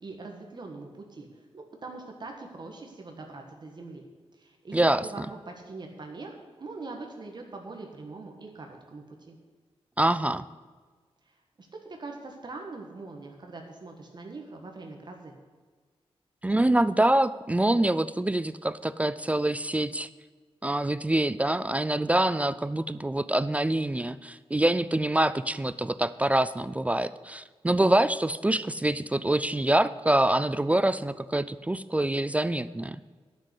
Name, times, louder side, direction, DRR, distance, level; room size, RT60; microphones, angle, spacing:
voice 1, 0.0-4.1 4.4-9.4 11.3-15.4, right 3 dB, 45° right, 2 dB, 1.5 m, -42 dB
voice 2, 4.7-5.3 10.0-10.4 16.4-20.1 20.6-33.0, right 1 dB, 15° right, 15 dB, 0.3 m, -25 dB
11.5 x 6.6 x 8.2 m, 1.4 s
wide cardioid pair, 115°, 10 cm